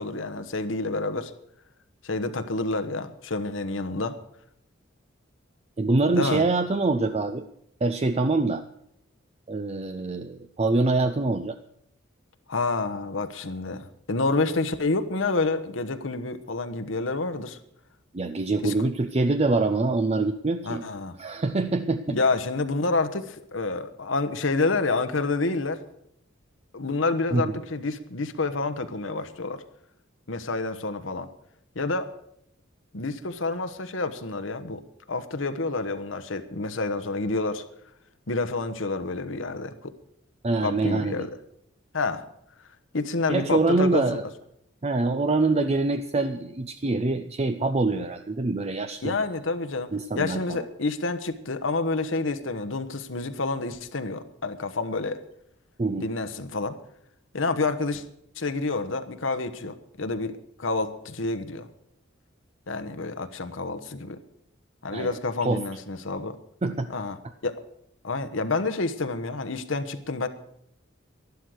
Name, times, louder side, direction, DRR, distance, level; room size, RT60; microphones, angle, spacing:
voice 1, 0.0-1.3 2.0-4.2 6.1-6.4 12.5-17.6 18.6-18.7 20.6-21.1 22.1-25.8 26.7-29.6 30.3-31.3 31.7-32.1 32.9-34.8 35.1-37.6 38.3-39.9 40.6-41.3 41.9-42.2 42.9-44.2 49.0-55.2 56.0-56.8 57.3-58.0 58.4-61.7 62.7-64.2 64.8-66.4 66.9-67.6 68.0-70.3, left 3 dB, 75° left, 9 dB, 1.2 m, -28 dB
voice 2, 5.8-7.5 7.8-8.6 9.5-11.6 18.1-20.8 21.2-22.2 27.3-27.6 40.4-41.3 43.3-44.3 44.8-49.2 49.9-50.6 55.8-56.1 64.9-65.6 66.6-66.9, right 3 dB, 30° right, 9 dB, 0.6 m, -25 dB
12.0 x 11.5 x 6.4 m, 0.74 s
head